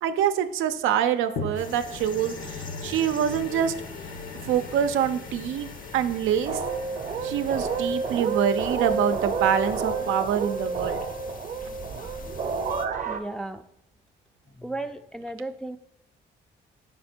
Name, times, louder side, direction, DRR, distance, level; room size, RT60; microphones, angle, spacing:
voice 1, 0.0-3.7 4.4-6.6 7.2-11.0, right 9 dB, 80° right, 9 dB, 0.5 m, -25 dB
sound 1, 1.4-11.8 12.5-12.6, left 4 dB, 80° left, 1.1 m, -41 dB
sound 2, 1.5-12.9, left 4 dB, 45° left, 0.7 m, -45 dB
sound 3, 6.4-13.2, right 4 dB, 40° right, 0.7 m, -29 dB
voice 2, 13.1-13.6 14.5-15.8, right 2 dB, 5° left, 6 dB, 0.4 m, -35 dB
5.5 x 4.3 x 4.3 m, 0.74 s
cardioid pair, 90°, 20 cm